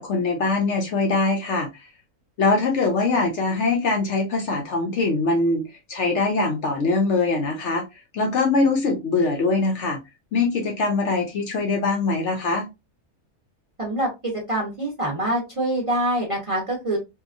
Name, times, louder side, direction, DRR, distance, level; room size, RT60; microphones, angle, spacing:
voice 1, 0.0-1.7 2.4-7.8 8.1-10.0 10.3-12.6, left 3 dB, 60° left, 2 dB, 0.8 m, -22 dB
voice 2, 13.8-17.0, right 1 dB, 30° right, -1 dB, 0.7 m, -25 dB
2.8 x 2.3 x 2.4 m, 0.23 s
omnidirectional pair, 1.5 m